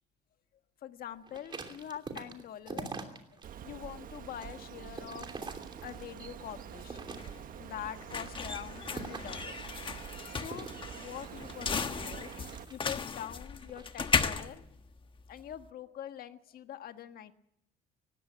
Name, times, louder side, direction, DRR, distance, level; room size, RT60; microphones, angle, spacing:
voice 1, 0.8-2.9 3.3-5.3 5.8-7.3 7.6-10.7 10.9-12.3 12.7-14.6 15.3-17.3, left 10 dB, 60° left, 8 dB, 1.6 m, -44 dB
sound 1, 1.3-3.5 3.9-6.3 6.7-7.6 8.1-9.4 10.4-13.1 13.6-13.9, right 4 dB, 25° right, 3.0 m, -44 dB
Bird, 3.4-12.6, right 9 dB, 55° right, 1.3 m, -46 dB
sound 2, 6.6-15.7, left 5 dB, 30° left, 1.3 m, -36 dB
19.0 x 16.5 x 9.3 m, 0.79 s
cardioid pair, 110°, 17 cm